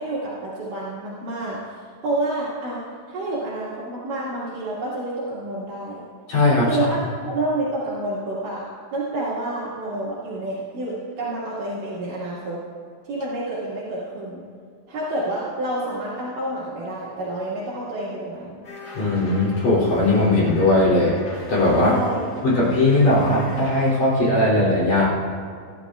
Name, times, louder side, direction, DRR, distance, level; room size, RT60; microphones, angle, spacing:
voice 1, 0.0-1.8 2.0-2.8 3.1-6.0 6.7-8.6 8.9-12.6 13.1-14.4 14.9-18.6 21.8-22.2, right 1 dB, 70° right, -9 dB, 3.5 m, -28 dB
voice 2, 6.3-6.9 18.9-21.2 21.5-22.0 22.4-25.1, left 2 dB, 60° left, -6 dB, 4.6 m, -18 dB
sound 1, 18.6-24.0, left 3 dB, 35° left, 2.8 m, -38 dB
24.5 x 11.5 x 2.4 m, 2.1 s
omnidirectional pair, 4.1 m